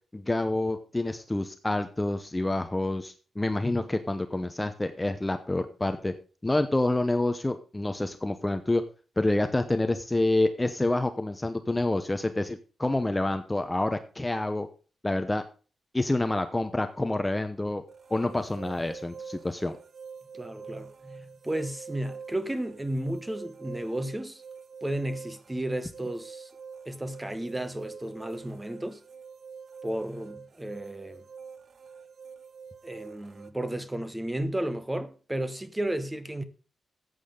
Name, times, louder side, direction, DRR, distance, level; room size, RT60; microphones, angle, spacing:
voice 1, 0.1-6.1 6.4-8.8 9.2-14.7 15.0-15.5 15.9-17.8 18.1-19.8, left 2 dB, 15° left, 0.8 m, -28 dB
sound 1, 17.9-33.5, right 6 dB, 50° right, 0.8 m, -46 dB
voice 2, 20.3-24.4 24.8-26.5 26.9-29.0 29.8-31.2 32.8-36.4, right 1 dB, 10° right, 1.1 m, -33 dB
14.0 x 8.4 x 3.8 m
wide cardioid pair, 125°, 0 cm